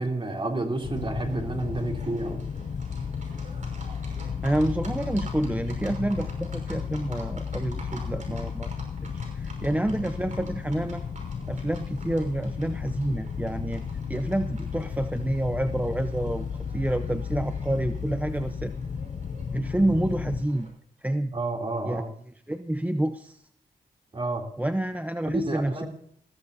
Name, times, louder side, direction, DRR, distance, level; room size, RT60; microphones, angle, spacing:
voice 1, 0.0-2.4 21.3-22.1 24.1-24.4 25.3-25.9, right 2 dB, 35° right, 2 dB, 3.1 m, -30 dB
sound 1, 0.8-20.4, left 6 dB, 50° left, 0.6 m, -34 dB
Livestock farm animals working animals, 0.8-20.7, right 2 dB, 50° right, 5.5 m, -47 dB
voice 2, 4.4-8.7 9.0-11.0 11.5-13.8 14.1-16.5 16.7-18.7 19.5-20.7 21.0-21.4 21.9-22.1 22.5-23.4 24.6-25.8, right 1 dB, 10° right, 10 dB, 0.6 m, -28 dB
20.0 x 15.0 x 2.7 m, 0.63 s
cardioid pair, 75°, 16 cm